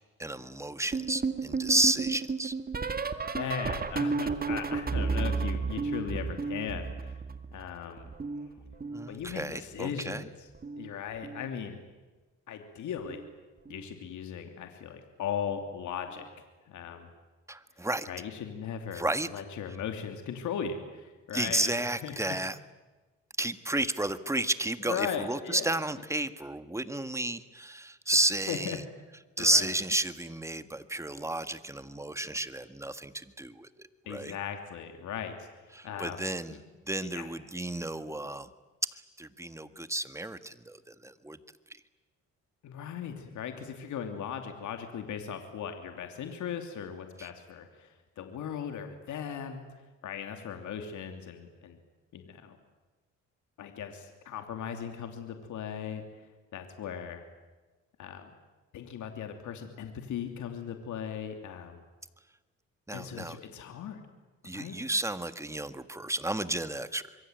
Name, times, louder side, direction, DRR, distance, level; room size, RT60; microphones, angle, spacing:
voice 1, 0.2-2.5 8.9-10.3 17.5-18.1 18.9-19.3 21.3-22.6 23.4-28.8 29.4-34.4 35.7-36.6 36.9-38.5 39.2-41.4 47.2-47.3 62.9-63.4 64.4-67.2, right 2 dB, 10° right, 11 dB, 1.7 m, -32 dB
sound 1, 0.9-7.7 8.0-9.6 10.5-10.9 11.2-11.5 13.0-13.3 13.7-13.9 15.5-15.6, right 4 dB, 30° right, 2.1 m, -33 dB
voice 2, 3.3-7.2 7.5-8.1 9.1-10.5 10.8-11.8 12.5-13.2 13.7-16.3 16.7-17.1 18.1-21.7 22.0-22.4 24.8-25.8 28.5-28.8 29.4-29.7 34.1-36.2 36.5-36.6 37.1-37.3 42.6-49.6 50.0-51.8 52.1-52.6 53.6-56.0 56.5-57.2 58.0-58.3 58.7-61.8 62.9-64.0 64.5-64.8, left 8 dB, 75° left, 6 dB, 3.0 m, -38 dB
26.5 x 23.0 x 9.4 m, 1.2 s
cardioid pair, 90°, 30 cm